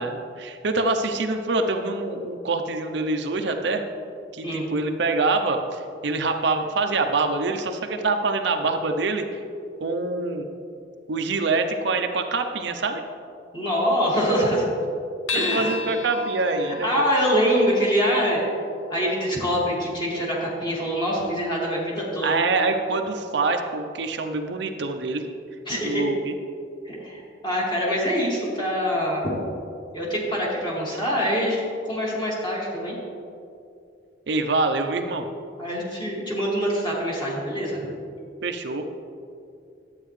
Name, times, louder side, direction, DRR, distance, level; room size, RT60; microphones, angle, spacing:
voice 1, 0.0-3.8 4.3-9.2 9.8-10.5 11.1-13.0 15.3-16.9 22.2-25.2 25.7-26.4 34.3-35.2 38.4-38.9, right 3 dB, 65° right, 5 dB, 0.6 m, -25 dB
voice 2, 13.5-14.6 15.3-15.7 16.6-18.5 18.9-22.3 25.7-26.1 26.8-29.3 29.9-31.6 31.9-32.9 35.6-37.8, equal, 25° left, -5 dB, 2.0 m, -24 dB
sound 1, 15.3-20.0, left 4 dB, 85° left, 0.6 m, -35 dB
11.5 x 8.7 x 3.2 m, 2.5 s
head